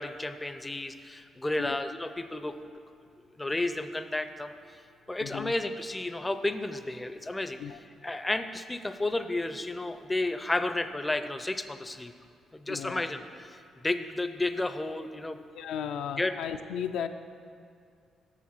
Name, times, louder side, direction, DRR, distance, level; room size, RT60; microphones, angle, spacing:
voice 1, 0.0-2.6 3.4-4.5 5.1-7.6 8.0-12.1 12.5-15.4 16.2-16.3, left 2 dB, 15° left, 10 dB, 0.4 m, -32 dB
voice 2, 5.2-5.5 7.6-7.8 12.7-13.1 15.5-17.1, left 8 dB, 85° left, 7 dB, 0.4 m, -35 dB
7.4 x 6.7 x 6.0 m, 2.3 s
cardioid pair, 90°, 0 cm